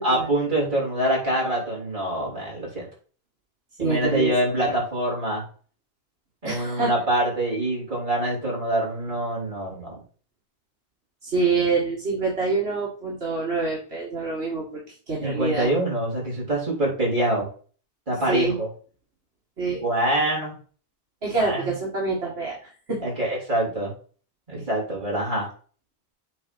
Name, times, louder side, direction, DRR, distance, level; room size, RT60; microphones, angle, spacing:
voice 1, 0.0-2.9 3.8-5.4 6.4-10.0 15.2-17.5 18.1-18.7 19.8-20.5 21.3-21.6 23.0-23.9 24.5-25.5, right 1 dB, 50° right, -4 dB, 3.7 m, -25 dB
voice 2, 3.8-4.3 4.6-4.7 6.4-6.9 11.2-14.8 15.1-15.7 18.3-18.6 19.6-19.8 21.2-23.0, right 3 dB, 80° right, -4 dB, 2.2 m, -26 dB
7.6 x 3.7 x 6.1 m, 0.41 s
omnidirectional pair, 1.1 m